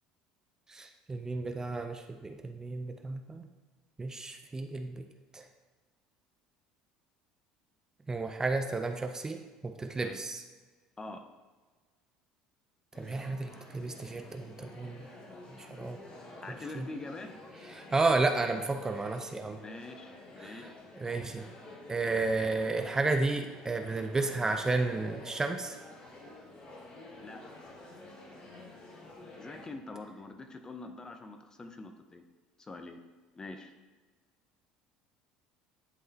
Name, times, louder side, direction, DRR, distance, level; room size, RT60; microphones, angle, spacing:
voice 1, 0.7-3.5 4.0-5.1 5.3-5.4 8.1-10.4 13.0-15.1 15.5-16.0 16.8-16.9 17.7-19.6 20.4-20.7 21.0-21.4 21.9-25.8, right 3 dB, 20° right, 6 dB, 0.6 m, -32 dB
sound 1, 12.9-29.7, left 2 dB, 45° left, 1.4 m, -49 dB
voice 2, 16.4-17.3 19.6-20.8 27.2-27.6 29.4-32.2 32.6-33.0 33.4-33.7, left 2 dB, 25° left, 6 dB, 0.7 m, -44 dB
10.5 x 3.8 x 2.8 m, 1.4 s
hypercardioid pair, 70°, 3 cm